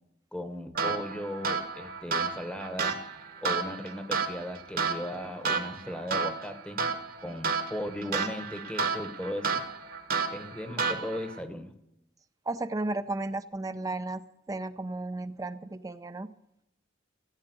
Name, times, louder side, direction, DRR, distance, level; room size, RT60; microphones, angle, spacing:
voice 1, 0.3-3.0 3.4-6.9 7.2-9.6 10.3-11.7, equal, 5° left, 8 dB, 0.9 m, -37 dB
sound 1, 0.7-11.4, right 5 dB, 50° right, 1.2 m, -32 dB
voice 2, 12.5-14.2 14.5-16.3, right 2 dB, 20° right, 11 dB, 0.4 m, -34 dB
15.5 x 8.7 x 7.7 m, 0.85 s
head